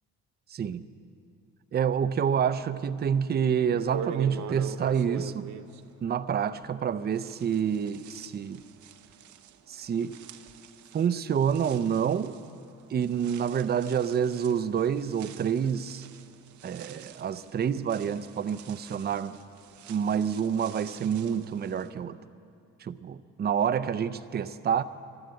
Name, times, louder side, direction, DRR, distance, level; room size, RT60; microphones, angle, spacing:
voice 1, 0.5-0.8 1.7-5.5 6.0-8.6 9.7-10.1 10.9-12.3 12.9-16.0 16.6-19.4 19.9-22.2 22.8-24.8, right 7 dB, 35° right, 14 dB, 0.5 m, -28 dB
sound 1, 3.2-3.3 3.7-6.8 7.1-21.9, right 8 dB, 70° right, 0.7 m, -44 dB
12.5 x 12.0 x 8.2 m, 2.4 s
cardioid pair, 90°, 30 cm